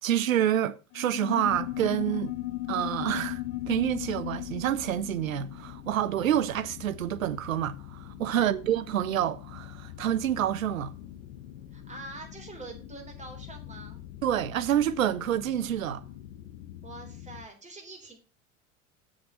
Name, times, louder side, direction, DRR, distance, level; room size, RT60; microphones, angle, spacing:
voice 1, 0.0-2.4 2.7-3.4 3.7-10.9 14.2-16.0, right 11 dB, 80° right, 0.7 m, -28 dB
sound 1, 0.9-6.9, left 17 dB, 35° left, 0.6 m, -36 dB
sound 2, 1.4-17.5, left 11 dB, 65° left, 1.2 m, -45 dB
voice 2, 11.7-14.1 16.8-18.2, right 3 dB, 15° right, 3.7 m, -45 dB
7.4 x 6.3 x 6.9 m
figure-of-eight pair, 80°, 40 cm